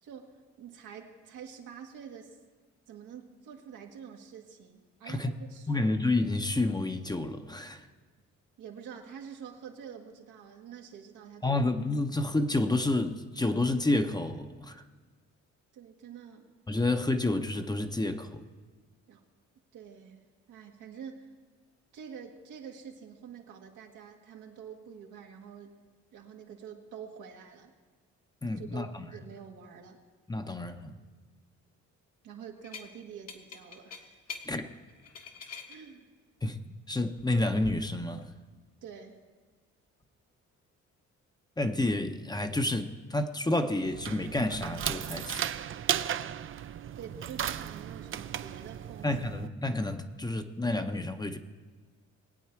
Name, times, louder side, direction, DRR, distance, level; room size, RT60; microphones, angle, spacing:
voice 1, 0.0-2.4 2.9-5.9 8.6-11.6 15.7-16.5 19.1-19.2 19.7-21.3 21.9-25.8 26.1-27.7 28.6-30.0 32.2-34.2 35.7-36.1 38.8-39.2 47.0-49.2, right 7 dB, 85° right, 1.7 m, -47 dB
voice 2, 5.7-7.9 11.4-14.8 16.7-18.4 28.4-29.1 30.3-31.0 34.5-34.7 36.4-36.6 36.9-38.3 41.6-45.5 49.0-51.4, left 2 dB, 15° left, 0.8 m, -29 dB
sound 1, 32.6-32.9 33.3-34.5 34.9-35.8 37.2-37.7, left 6 dB, 55° left, 1.4 m, -43 dB
sound 2, 43.8-49.5, right 9 dB, 45° right, 0.5 m, -35 dB
21.0 x 8.5 x 4.5 m
cardioid pair, 90°, 30 cm